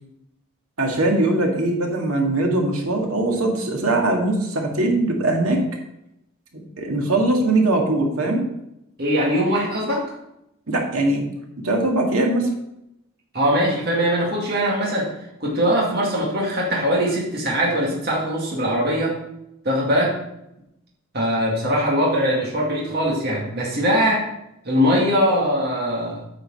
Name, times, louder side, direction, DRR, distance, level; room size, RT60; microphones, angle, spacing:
voice 1, 0.8-5.6 6.8-8.4 10.7-11.2 11.6-12.5, right 2 dB, 85° right, 1 dB, 2.0 m, -21 dB
voice 2, 9.0-10.1 13.3-15.1 15.4-19.2 19.6-20.2 21.1-24.2 24.7-26.2, equal, 50° right, -3 dB, 2.3 m, -21 dB
9.1 x 5.1 x 6.3 m, 0.83 s
head